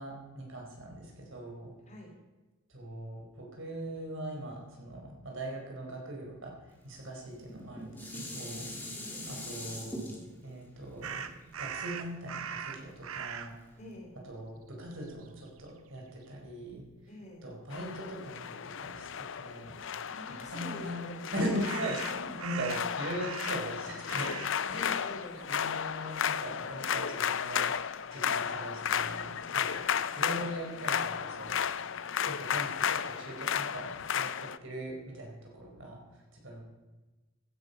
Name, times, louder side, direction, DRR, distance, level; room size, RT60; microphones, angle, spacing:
voice 1, 0.0-1.7 2.7-8.7 9.3-10.0 10.4-11.3 11.6-13.5 14.2-16.8 17.4-19.9 20.3-24.3 24.7-25.0 25.5-27.7 28.1-29.8 30.2-31.6 32.2-36.6, right 1 dB, 65° right, -1 dB, 4.6 m, -40 dB
voice 2, 1.9-2.2 9.0-9.3 13.8-14.2 17.1-17.5 20.0-21.5 24.7-25.5, equal, 35° left, 0 dB, 3.5 m, -46 dB
Dishes pots and pans, 7.4-12.6 13.2-13.3, equal, 10° left, 2.4 m, -42 dB
sound 1, 11.0-13.6 14.4-14.5 14.9-15.8 21.6-23.8 24.0-24.6 24.9-26.5, right 7 dB, 80° right, 0.8 m, -41 dB
sound 2, 17.7-34.6, left 8 dB, 60° left, 0.5 m, -34 dB
15.5 x 9.9 x 5.7 m, 1.1 s
head